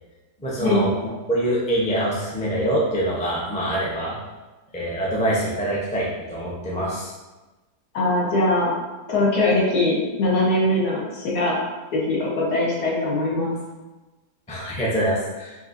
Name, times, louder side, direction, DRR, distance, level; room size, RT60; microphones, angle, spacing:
voice 1, 0.4-4.1 4.7-7.1 14.5-15.5, right 1 dB, 10° left, -6 dB, 0.4 m, -25 dB
voice 2, 7.9-8.7 9.1-11.6 11.9-13.5, left 2 dB, 70° left, -6 dB, 1.7 m, -21 dB
5.7 x 2.7 x 2.6 m, 1.1 s
omnidirectional pair, 1.8 m